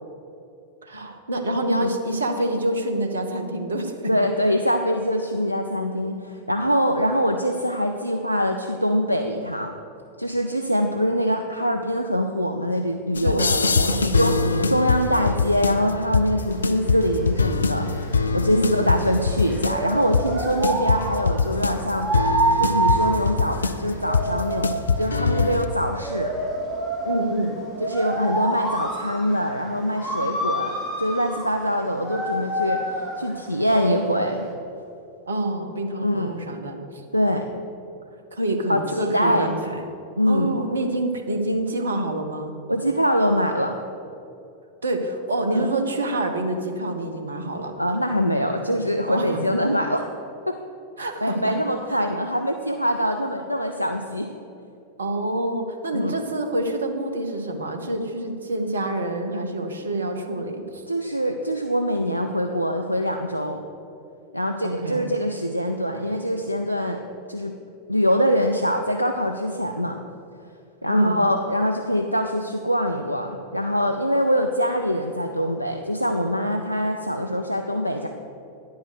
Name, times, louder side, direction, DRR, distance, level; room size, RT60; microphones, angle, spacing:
voice 1, 0.8-4.1 13.2-14.7 18.5-19.0 27.0-27.6 35.3-37.0 38.3-39.8 40.3-42.5 44.8-47.7 49.1-49.4 51.0-51.5 51.9-52.0 55.0-60.8 64.6-65.1 70.9-71.2, right 1 dB, 75° right, 5 dB, 1.0 m, -27 dB
voice 2, 4.1-9.7 10.2-14.3 14.7-22.1 22.6-26.3 27.8-34.5 36.0-36.3 37.1-37.4 38.7-39.5 40.2-40.6 42.7-43.8 45.5-45.7 47.8-50.1 50.5-50.6 51.2-54.3 55.9-56.2 60.9-63.6 64.3-67.0 67.3-67.5 67.9-70.0 70.8-78.1, equal, 90° right, 4 dB, 0.4 m, -24 dB
sound 1, 13.1-25.7, left 4 dB, 75° left, 0.4 m, -24 dB
sound 2, 16.5-34.5, right 2 dB, 15° right, 2.3 m, -28 dB
10.0 x 5.6 x 6.4 m, 2.7 s
figure-of-eight pair, 90°, 0 cm